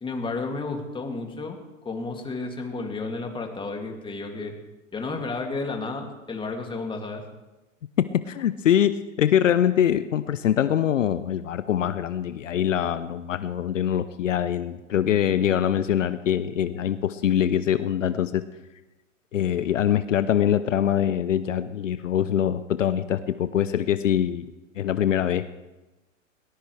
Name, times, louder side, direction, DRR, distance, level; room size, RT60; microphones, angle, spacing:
voice 1, 0.0-4.5 4.9-7.2, left 3 dB, 15° left, 2 dB, 2.6 m, -32 dB
voice 2, 8.0-18.4 19.3-24.5 24.8-25.4, left 10 dB, 70° left, 13 dB, 0.9 m, -23 dB
21.0 x 19.0 x 3.4 m, 1.1 s
figure-of-eight pair, 100°, 39 cm